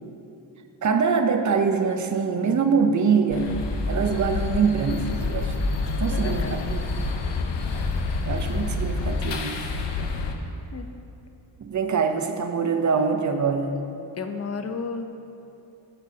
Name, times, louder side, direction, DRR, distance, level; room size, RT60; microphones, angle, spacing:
voice 1, 0.8-3.5 3.9-5.6 6.0-6.8 8.3-9.7 11.6-13.8, right 5 dB, 40° right, 6 dB, 0.7 m, -24 dB
sound 1, 3.3-10.3, left 3 dB, 65° left, 1.0 m, -27 dB
voice 2, 6.1-6.6 10.7-10.9 14.2-15.1, left 5 dB, 35° left, 7 dB, 0.6 m, -32 dB
14.0 x 8.9 x 2.8 m, 2.8 s
wide cardioid pair, 145°, 46 cm